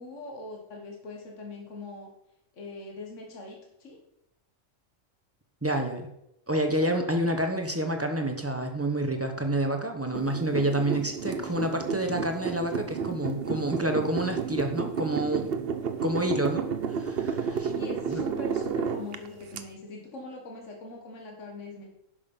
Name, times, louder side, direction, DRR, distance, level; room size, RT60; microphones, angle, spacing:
voice 1, 0.0-2.1 2.5-4.0 17.5-21.9, left 2 dB, 65° left, 0 dB, 2.0 m, -42 dB
voice 2, 5.6-6.1 6.5-15.6 16.0-17.7 18.1-18.2, right 1 dB, 10° right, 4 dB, 1.2 m, -28 dB
sound 1, 10.1-19.6, right 6 dB, 55° right, 0.9 m, -31 dB
11.0 x 6.6 x 5.5 m, 0.83 s
omnidirectional pair, 1.4 m